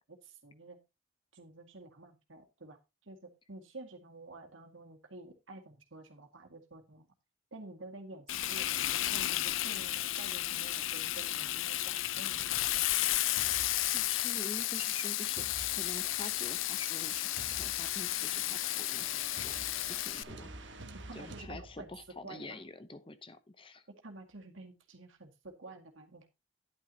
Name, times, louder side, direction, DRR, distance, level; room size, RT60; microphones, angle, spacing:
voice 1, 0.1-0.8 1.3-2.8 3.1-3.2 3.5-7.1 7.5-12.7 13.0-13.1 20.9-21.9 22.2-22.6 24.0-26.3, right 2 dB, 80° right, 4 dB, 2.0 m, -50 dB
Frying (food), 8.3-20.2, left 14 dB, 80° left, 0.5 m, -33 dB
sound 1, 13.4-22.2, right 2 dB, 65° right, 1.3 m, -50 dB
voice 2, 13.9-19.1 19.3-19.5 19.9-20.7 21.1-23.9, left 2 dB, 25° left, 12 dB, 0.8 m, -46 dB
11.0 x 9.2 x 2.8 m, 0.24 s
head